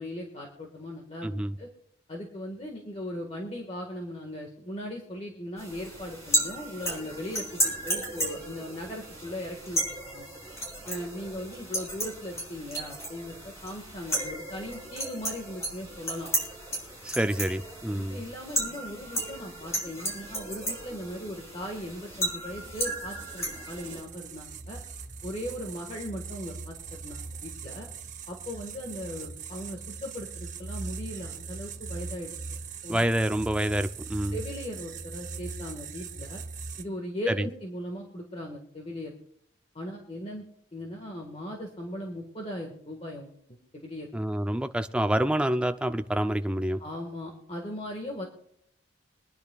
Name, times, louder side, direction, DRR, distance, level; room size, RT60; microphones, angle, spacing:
voice 1, 0.0-1.7 2.1-10.3 10.9-16.3 17.9-24.8 25.2-27.9 28.3-32.3 32.8-33.2 34.3-36.4 36.8-39.1 39.7-40.4 40.7-44.1 46.8-48.3, left 1 dB, 30° left, 1 dB, 1.5 m, -38 dB
voice 2, 1.2-1.5 17.0-18.2 32.9-34.4 37.3-37.5 44.1-46.8, right 1 dB, 5° right, 8 dB, 0.4 m, -27 dB
sound 1, 5.6-24.0, right 1 dB, 15° left, 4.5 m, -34 dB
sound 2, 22.5-36.8, right 4 dB, 40° right, 0.8 m, -40 dB
24.0 x 10.0 x 2.3 m, 0.71 s
head